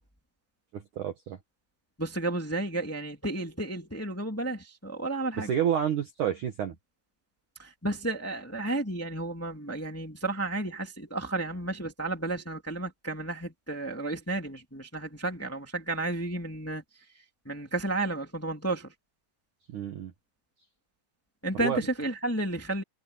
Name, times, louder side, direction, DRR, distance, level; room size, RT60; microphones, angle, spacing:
voice 1, 0.7-1.4 5.4-6.8 19.7-20.1 21.6-21.8, right 9 dB, 60° right, 2.1 m, -29 dB
voice 2, 2.0-5.5 7.6-16.8 17.4-18.9 21.4-22.8, right 2 dB, 5° left, 1.9 m, -32 dB
omnidirectional pair, 5.3 m